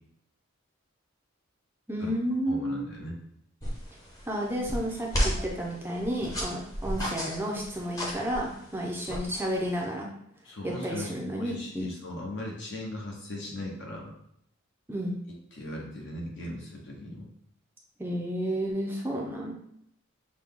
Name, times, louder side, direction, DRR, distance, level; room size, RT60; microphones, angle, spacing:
voice 1, 1.9-2.9 4.3-10.1 10.6-11.9 14.9-15.2 18.0-19.5, equal, 10° right, -2 dB, 0.6 m, -31 dB
voice 2, 2.5-3.2 6.8-6.9 10.4-14.1 15.5-17.3, left 1 dB, 60° left, -1 dB, 1.1 m, -38 dB
sound 1, 3.6-9.8, equal, 15° left, 0.9 m, -34 dB
6.1 x 2.3 x 3.7 m, 0.72 s
head